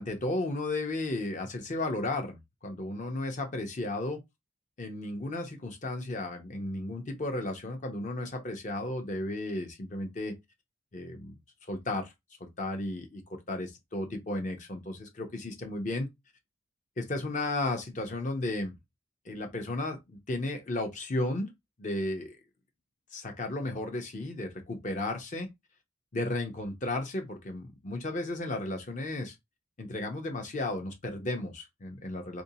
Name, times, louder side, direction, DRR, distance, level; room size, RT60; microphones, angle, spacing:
voice 1, 0.0-4.2 4.8-10.4 10.9-11.3 11.7-12.1 12.4-16.1 17.0-18.7 19.3-21.5 21.8-22.4 23.1-25.5 26.1-29.3 29.8-32.4, left 2 dB, 35° left, 0.6 m, -34 dB
3.6 x 2.6 x 2.7 m
head